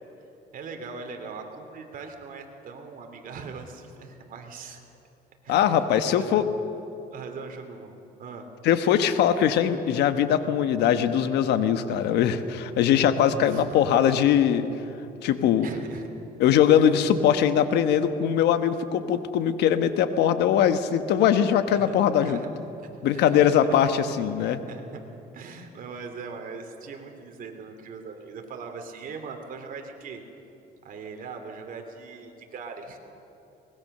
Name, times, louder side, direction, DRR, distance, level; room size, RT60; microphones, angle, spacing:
voice 1, 0.5-4.8 5.4-6.4 7.1-8.4 13.5-13.8 15.6-16.1 21.7-21.9 22.2-22.5 23.1-23.6 24.5-25.0 25.3-30.2 30.8-33.0, right 5 dB, 55° right, 4 dB, 2.9 m, -40 dB
voice 2, 5.5-6.4 8.6-14.7 15.2-15.7 16.4-22.4 23.0-24.6, left 9 dB, 80° left, 10 dB, 1.3 m, -21 dB
23.0 x 20.5 x 6.7 m, 2.9 s
cardioid pair, 110°, 17 cm